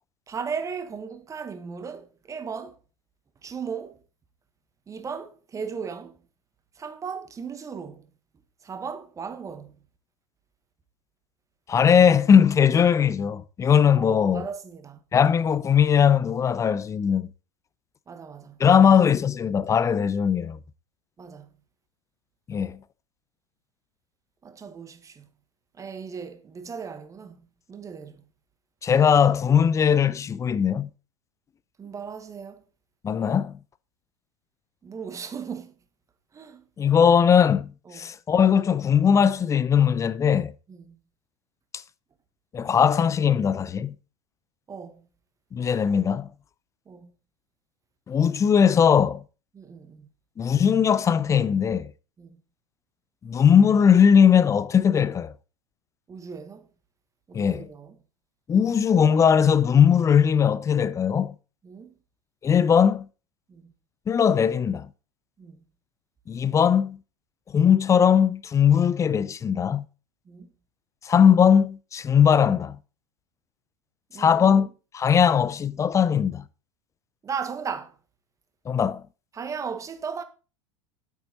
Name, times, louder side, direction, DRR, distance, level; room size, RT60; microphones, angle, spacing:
voice 1, 0.3-2.7 3.4-4.0 4.9-6.2 6.8-8.1 8.6-9.7 13.9-15.0 18.1-18.8 21.2-21.5 24.4-25.3 25.8-27.4 27.7-28.2 31.8-32.6 34.8-35.7 36.3-36.6 37.9-38.1 40.7-41.0 44.7-45.1 46.9-47.1 49.5-50.1 52.2-52.4 56.1-56.7 57.3-58.0 61.6-61.9 63.5-63.7 65.4-65.6 70.3-70.5 74.1-74.7 77.2-77.9 79.3-80.2, right 6 dB, 20° right, 1.5 m, -36 dB
voice 2, 11.7-14.5 15.1-17.3 18.6-20.6 22.5-22.8 28.8-30.9 33.0-33.5 36.8-40.5 42.5-43.9 45.5-46.3 48.1-49.2 50.4-51.9 53.2-55.3 57.3-57.7 58.5-61.3 62.4-63.0 64.1-64.9 66.3-67.0 67.5-69.8 71.1-72.8 74.2-74.7 74.9-76.4 78.7-79.0, left 7 dB, 20° left, 0.6 m, -19 dB
10.5 x 8.7 x 4.0 m
figure-of-eight pair, 85°, 17 cm